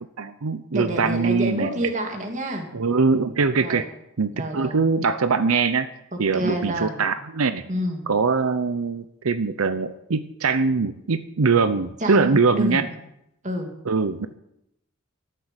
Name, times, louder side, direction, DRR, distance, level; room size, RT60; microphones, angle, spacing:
voice 1, 0.2-1.9 2.7-3.9 4.2-5.9 6.2-7.6 8.1-12.9 13.9-14.4, right 4 dB, 90° right, 11 dB, 0.7 m, -22 dB
voice 2, 0.7-2.7 3.1-3.8 4.3-4.8 6.1-7.0 7.7-8.0 12.0-12.9 13.4-13.7, equal, 35° right, 3 dB, 2.6 m, -28 dB
13.5 x 7.7 x 9.9 m, 0.82 s
head